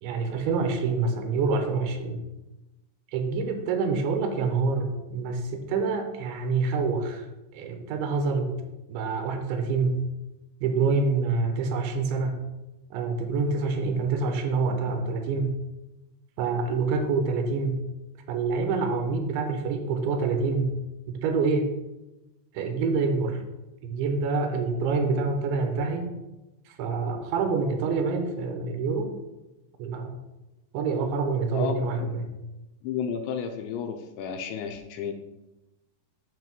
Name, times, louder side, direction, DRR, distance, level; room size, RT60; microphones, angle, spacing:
voice 1, 0.0-2.2 3.1-7.3 7.5-8.5 8.9-10.0 10.6-12.4 12.9-15.5 16.4-17.8 18.3-20.7 21.1-21.7 22.5-23.4 23.8-26.1 26.7-29.1 29.8-30.2 30.7-32.3, right 4 dB, 80° right, 5 dB, 2.9 m, -26 dB
voice 2, 32.8-35.1, left 7 dB, 80° left, 5 dB, 2.7 m, -32 dB
9.1 x 3.1 x 5.9 m, 1.0 s
omnidirectional pair, 5.4 m